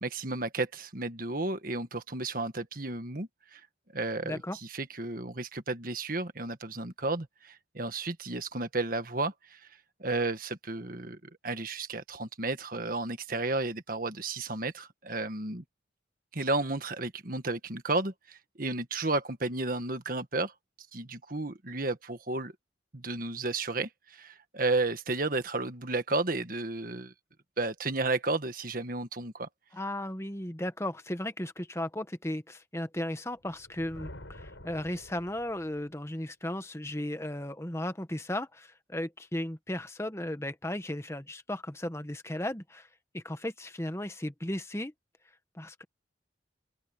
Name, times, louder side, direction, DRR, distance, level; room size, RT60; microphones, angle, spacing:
voice 1, 0.0-3.6 3.9-4.4 4.7-9.6 10.0-11.2 11.4-15.6 16.3-20.5 20.9-22.5 22.9-27.1 27.6-29.5, right 2 dB, 45° right, 1.6 m, -32 dB
voice 2, 4.2-4.6 29.7-42.9 43.1-44.9 45.5-45.8, left 1 dB, 15° left, 1.2 m, -35 dB
Thunder, 33.3-36.0, left 1 dB, 75° left, 6.8 m, -49 dB
open air
head